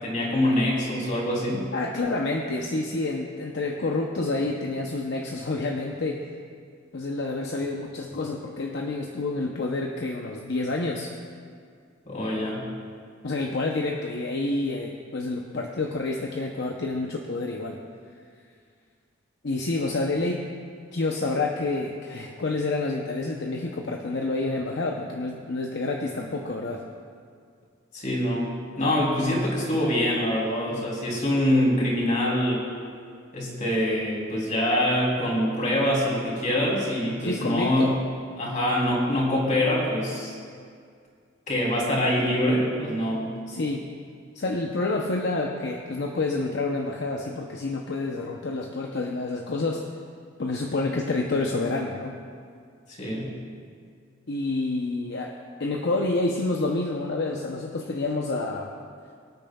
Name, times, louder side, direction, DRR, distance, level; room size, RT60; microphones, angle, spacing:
voice 1, 0.0-1.7 12.1-12.6 27.9-28.5 28.8-32.6 33.3-37.9 38.4-40.3 41.5-43.3 53.0-53.3, left 1 dB, 40° left, -4 dB, 3.3 m, -24 dB
voice 2, 1.7-6.3 6.9-11.1 13.2-17.8 19.4-20.4 20.9-26.8 37.2-37.9 43.5-43.9 44.3-49.9 50.4-52.2 54.3-58.7, left 2 dB, 65° left, 1 dB, 0.7 m, -28 dB
24.5 x 8.8 x 2.3 m, 2.1 s
head